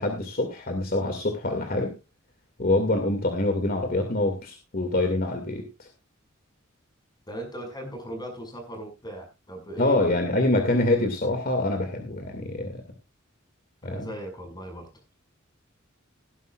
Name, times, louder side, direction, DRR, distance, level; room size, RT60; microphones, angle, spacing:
voice 1, 0.0-1.9 2.6-5.9 9.8-12.8 13.8-14.1, left 2 dB, 45° left, 4 dB, 2.3 m, -25 dB
voice 2, 7.3-10.1 13.8-14.9, equal, 20° left, 4 dB, 6.0 m, -38 dB
18.5 x 11.0 x 2.4 m, 0.27 s
head